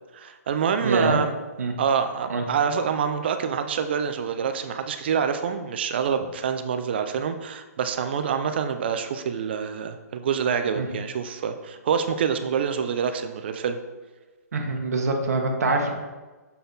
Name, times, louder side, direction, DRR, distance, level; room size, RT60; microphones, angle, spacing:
voice 1, 0.1-1.3 1.8-13.8, right 7 dB, 40° right, 8 dB, 0.4 m, -26 dB
voice 2, 0.8-1.2 1.6-1.7 2.3-2.4 10.7-10.9 14.5-15.9, right 3 dB, 60° right, 2 dB, 1.2 m, -24 dB
6.9 x 4.1 x 3.9 m, 1.3 s
hypercardioid pair, 165°, 9 cm